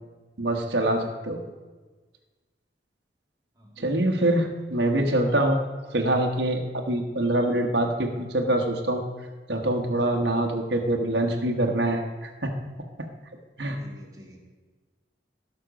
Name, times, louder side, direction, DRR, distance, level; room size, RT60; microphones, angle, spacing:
voice 1, 0.4-1.4 3.8-5.6 5.9-9.0 9.5-12.5 13.6-13.8, right 1 dB, 65° right, 2 dB, 1.2 m, -24 dB
voice 2, 13.7-14.4, left 1 dB, 20° right, -1 dB, 1.9 m, -48 dB
17.5 x 6.0 x 5.1 m, 1.3 s
head